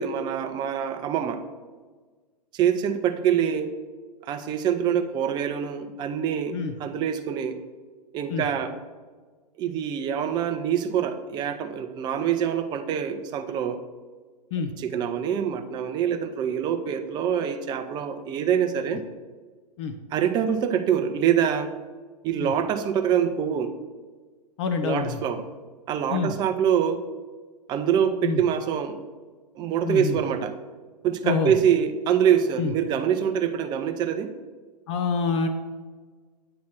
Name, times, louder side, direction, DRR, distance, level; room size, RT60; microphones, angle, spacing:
voice 1, 0.0-1.4 2.5-3.7 4.2-7.6 8.1-8.7 9.6-13.8 14.6-19.0 20.1-21.7 22.2-23.7 24.8-25.5 25.9-27.0 27.7-29.0 29.6-30.5 31.0-34.3, right 8 dB, 20° right, 8 dB, 0.5 m, -25 dB
voice 2, 24.6-25.2 26.1-26.3 28.2-28.4 29.8-30.2 31.2-31.5 32.6-32.7 34.9-35.5, left 5 dB, 45° left, 8 dB, 0.5 m, -26 dB
8.6 x 3.1 x 6.0 m, 1.4 s
figure-of-eight pair, 110°, 21 cm